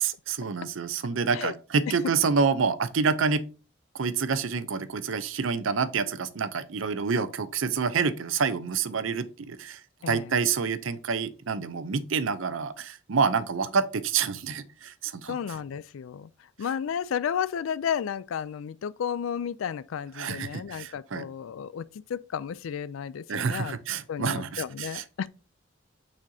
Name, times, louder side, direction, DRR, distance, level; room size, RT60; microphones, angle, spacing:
voice 1, 0.0-3.4 3.9-9.8 10.1-15.4 20.2-21.3 23.3-25.3, right 5 dB, 75° right, 0.6 m, -28 dB
voice 2, 15.3-16.3 16.6-21.8 22.1-23.8 24.1-25.3, left 8 dB, 85° left, 0.3 m, -32 dB
8.7 x 4.3 x 2.7 m
head